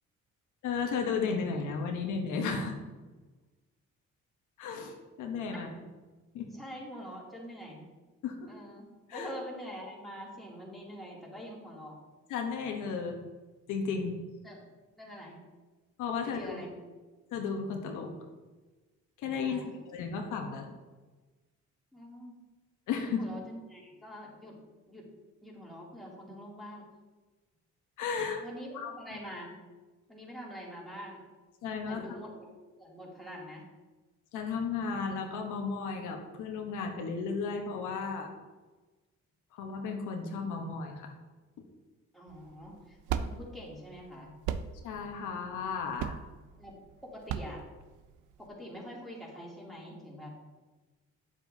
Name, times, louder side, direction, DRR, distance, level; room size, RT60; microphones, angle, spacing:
voice 1, 0.6-2.8 4.6-5.9 6.3-6.5 8.2-8.5 9.1-9.3 12.3-13.2 13.7-14.1 16.0-16.6 17.3-18.1 19.2-20.7 22.9-23.3 28.0-28.4 28.7-28.9 31.6-32.2 34.3-38.3 39.5-41.1 44.8-46.2, left 5 dB, 85° left, 3 dB, 1.0 m, -34 dB
voice 2, 6.5-7.8 8.5-12.0 14.4-14.6 15.0-15.4 16.2-16.8 19.5-19.7 21.9-22.4 23.2-24.6 24.9-25.1 25.4-26.8 28.4-29.6 30.1-31.2 31.8-32.5 32.8-33.6 42.1-44.4 46.6-46.8 47.0-47.7 48.4-50.4, equal, ahead, -5 dB, 2.6 m, -45 dB
sound 1, 42.3-48.5, right 8 dB, 90° right, 0.5 m, -37 dB
8.7 x 7.3 x 2.7 m, 1.2 s
cardioid pair, 90°, 30 cm